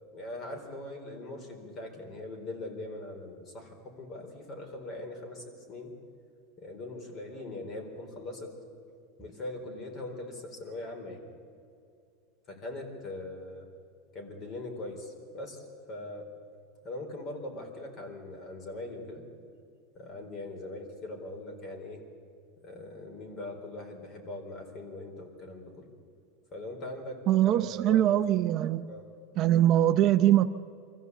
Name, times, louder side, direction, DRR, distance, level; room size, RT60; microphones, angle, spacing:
voice 1, 0.1-5.9 6.6-8.6 9.2-11.3 12.5-13.7 14.1-16.3 16.8-19.3 19.9-22.0 22.6-25.9 26.5-28.0 28.9-29.1, left 2 dB, 35° left, 4.3 m, -41 dB
voice 2, 27.3-28.9 29.4-30.5, right 12 dB, 40° right, 0.7 m, -22 dB
24.5 x 14.5 x 8.3 m
supercardioid pair, 135°, 0 cm